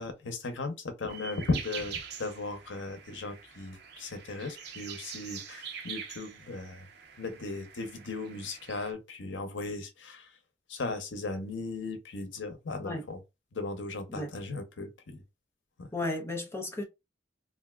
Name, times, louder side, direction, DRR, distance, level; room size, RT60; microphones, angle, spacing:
voice 1, 0.0-6.9 7.2-10.3 10.7-13.2 13.5-15.2 15.8-15.9, left 3 dB, 85° left, 0.8 m, -37 dB
sound 1, 1.1-8.9, right 7 dB, 60° right, 0.6 m, -44 dB
voice 2, 15.9-16.8, left 2 dB, 15° left, 0.7 m, -34 dB
3.4 x 2.6 x 2.3 m
head